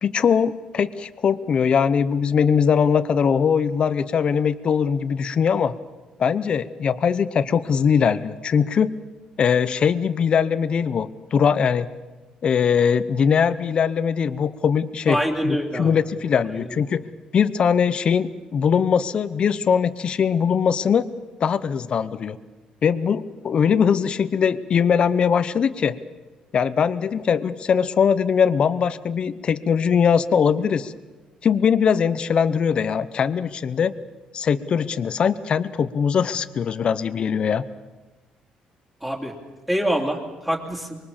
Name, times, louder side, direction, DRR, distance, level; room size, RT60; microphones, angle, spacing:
voice 1, 0.0-5.7 6.2-8.9 9.4-11.9 12.4-15.2 15.4-17.0 17.3-21.1 21.4-22.4 22.8-26.0 26.5-30.9 31.4-33.9 34.3-37.6, left 7 dB, 40° left, 14 dB, 0.9 m, -21 dB
voice 2, 15.1-15.9 16.6-16.7 39.0-39.3 39.7-41.0, equal, 5° right, -1 dB, 3.0 m, -25 dB
24.5 x 23.0 x 7.3 m, 1.2 s
cardioid pair, 135°, 2 cm